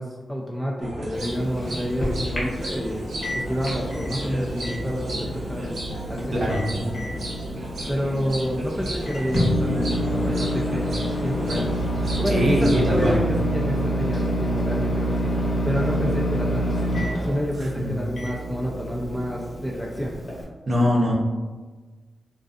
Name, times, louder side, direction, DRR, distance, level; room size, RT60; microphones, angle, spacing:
voice 1, 0.0-3.0 3.3-5.8 6.1-7.0 7.9-11.7 12.2-20.2, equal, 5° left, -3 dB, 0.3 m, -29 dB
sound 1, 0.8-13.2, equal, 85° right, 0.7 m, -33 dB
Microwave oven, 1.1-20.4, equal, 50° left, 0.7 m, -28 dB
voice 2, 12.3-13.2 17.6-18.0 20.7-21.1, equal, 45° right, -3 dB, 0.7 m, -22 dB
2.5 x 2.3 x 2.4 m, 1.3 s
wide cardioid pair, 105°, 0 cm